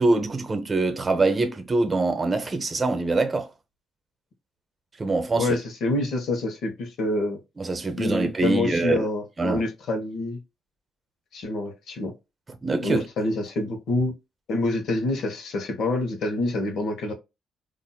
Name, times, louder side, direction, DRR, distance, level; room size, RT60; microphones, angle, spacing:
voice 1, 0.0-3.5 5.0-5.5 7.6-9.0 9.4-9.6 12.6-13.0, right 3 dB, 25° right, 0.8 m, -24 dB
voice 2, 5.4-7.4 7.9-10.4 11.3-12.1 12.8-14.1 14.5-17.1, left 2 dB, 70° left, 1.1 m, -27 dB
3.9 x 2.6 x 2.3 m
cardioid pair, 90°, 0 cm